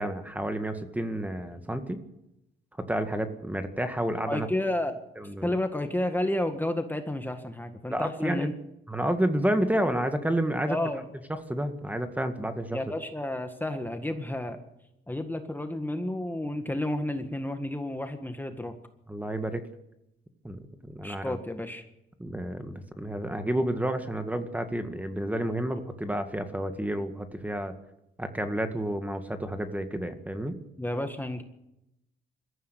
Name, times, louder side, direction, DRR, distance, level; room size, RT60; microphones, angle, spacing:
voice 1, 0.0-2.0 2.8-4.5 5.2-5.6 7.9-8.5 8.9-10.8 11.5-12.8 19.1-19.6 20.4-21.4 22.2-27.7 28.2-30.6, right 1 dB, 10° right, 8 dB, 2.0 m, -30 dB
voice 2, 4.3-5.0 5.4-8.5 10.7-11.0 12.7-14.6 15.1-18.7 21.0-21.9 30.8-31.4, left 1 dB, 10° left, 6 dB, 1.8 m, -31 dB
21.5 x 14.5 x 8.3 m, 0.86 s
cardioid pair, 90°, 20 cm